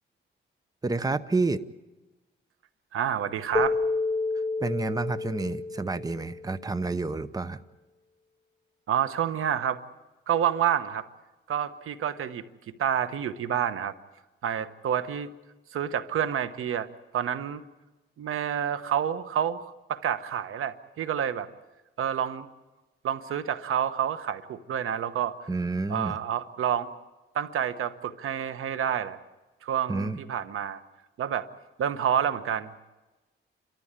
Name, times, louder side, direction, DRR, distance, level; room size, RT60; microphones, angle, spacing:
voice 1, 0.8-1.6 4.6-7.6 25.5-26.2 29.9-30.2, right 3 dB, 15° right, 13 dB, 0.8 m, -29 dB
voice 2, 2.9-3.8 8.9-9.8 10.3-11.0 11.5-12.4 12.8-13.9 14.4-15.3 15.7-16.9 17.1-17.6 18.2-19.6 19.9-21.5 22.0-22.5 23.0-25.4 25.9-26.9 27.3-29.2 29.6-30.8 31.2-31.5 31.8-32.7, right 9 dB, 90° right, 12 dB, 1.2 m, -28 dB
Keyboard (musical), 3.5-6.7, left 3 dB, 10° left, 1.1 m, -30 dB
29.0 x 13.5 x 9.0 m, 1.1 s
cardioid pair, 105°, 21 cm